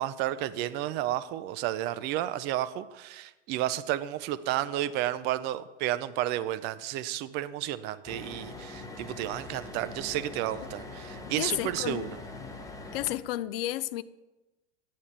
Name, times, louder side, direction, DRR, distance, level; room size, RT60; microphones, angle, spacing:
voice 1, 0.0-12.1, right 13 dB, 30° right, 0.4 m, -32 dB
sound 1, 8.0-13.2, left 2 dB, 10° left, 1.0 m, -42 dB
voice 2, 11.4-12.2 12.9-14.0, left 14 dB, 50° left, 0.5 m, -32 dB
9.1 x 8.5 x 4.3 m
hypercardioid pair, 95°, 37 cm